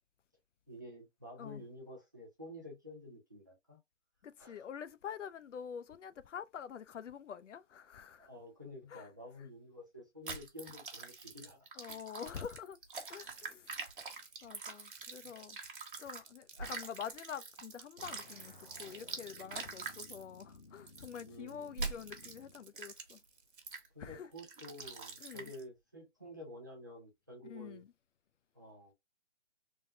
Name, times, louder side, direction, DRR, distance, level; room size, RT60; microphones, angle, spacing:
voice 1, 0.7-3.8 4.4-4.7 8.2-11.7 21.2-21.7 23.9-27.8 28.5-28.9, left 1 dB, 15° right, 0.6 m, -50 dB
voice 2, 4.2-8.3 8.9-9.1 11.8-12.8 13.1-13.7 14.1-14.2 14.4-15.6 16.0-23.2 24.0-24.3 25.2-25.5 27.4-27.9, left 8 dB, 90° left, 0.6 m, -46 dB
sound 1, 10.3-16.2 16.5-20.2 20.9-21.2 21.8-22.4 22.8-23.2 23.7-23.9 24.4-25.6, right 4 dB, 45° right, 1.2 m, -45 dB
Crumpling crinkling, 13.7-23.9, right 5 dB, 65° right, 1.2 m, -60 dB
sound 2, 18.0-22.7, left 3 dB, 45° left, 0.5 m, -58 dB
3.5 x 2.2 x 3.9 m
hypercardioid pair, 180°, 35 cm